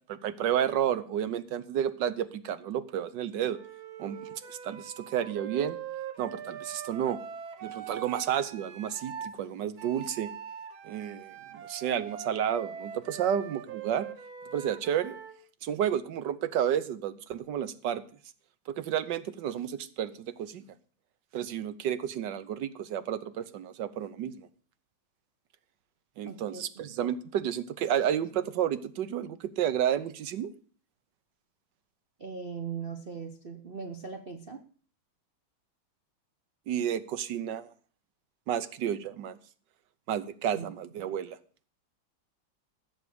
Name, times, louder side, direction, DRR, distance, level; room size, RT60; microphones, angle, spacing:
voice 1, 0.1-3.6 4.0-5.8 6.2-7.2 7.6-10.3 10.8-14.1 14.5-15.2 15.6-18.0 18.7-20.6 21.3-24.5 26.2-30.5 36.7-37.7 38.5-39.4 40.1-41.4, right 9 dB, 65° right, 14 dB, 1.5 m, -31 dB
Wind instrument woodwind instrument, 3.5-9.4 9.8-15.4, right 8 dB, 85° right, 2.1 m, -42 dB
voice 2, 26.2-26.8 32.2-34.6 40.5-40.7, right 6 dB, 40° right, 5 dB, 0.9 m, -39 dB
16.0 x 6.4 x 7.0 m, 0.43 s
omnidirectional pair, 2.2 m